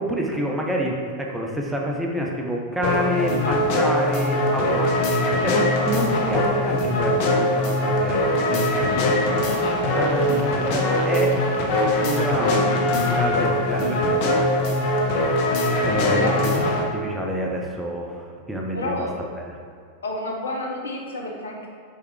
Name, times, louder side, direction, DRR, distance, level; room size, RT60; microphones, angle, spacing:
voice 1, 0.0-9.6 9.9-11.4 11.8-15.1 15.8-19.1, equal, 5° right, -1 dB, 0.9 m, -28 dB
sound 1, 2.8-16.8, left 1 dB, 45° left, 0.9 m, -22 dB
voice 2, 18.7-19.2 20.0-21.7, left 1 dB, 70° left, 0 dB, 1.0 m, -29 dB
5.7 x 4.1 x 4.7 m, 2.2 s
figure-of-eight pair, 90°, 0 cm